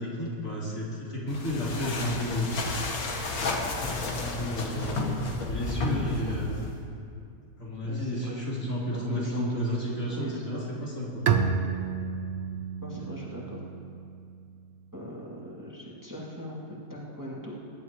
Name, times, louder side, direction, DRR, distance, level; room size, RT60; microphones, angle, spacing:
voice 1, 0.0-2.6 4.1-5.2 5.5-6.6 7.6-11.3, equal, 65° left, -7 dB, 3.7 m, -32 dB
sound 1, 1.3-6.8, left 2 dB, 85° left, 1.8 m, -32 dB
voice 2, 7.8-8.3 8.6-8.7 9.1-10.7 12.8-13.6 14.9-17.5, equal, 15° right, -6 dB, 2.2 m, -39 dB
Bowed string instrument, 11.3-14.8, right 6 dB, 85° right, 1.3 m, -30 dB
22.5 x 11.5 x 3.1 m, 2.4 s
omnidirectional pair, 1.5 m